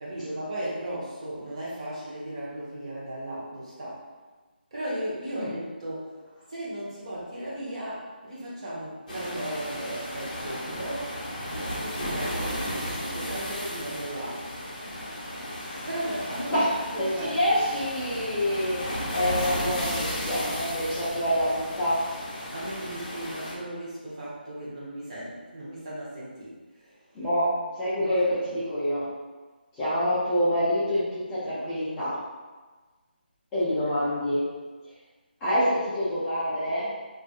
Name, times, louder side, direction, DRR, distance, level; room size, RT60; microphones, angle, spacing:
voice 1, 0.0-4.0 4.7-6.2 6.5-11.1 11.8-14.4 15.9-17.4 18.4-18.5 20.9-21.1 22.5-27.0 28.0-28.2 33.8-34.0, right 1 dB, 35° right, -7 dB, 0.8 m, -36 dB
sound 1, 9.1-23.5, equal, 40° left, 0.7 m, -34 dB
voice 2, 17.2-18.9 19.1-22.1 27.1-29.1 29.8-32.2 33.5-34.5 35.4-36.9, equal, 10° left, -14 dB, 0.4 m, -26 dB
2.6 x 2.4 x 2.3 m, 1.3 s
figure-of-eight pair, 165°, 6 cm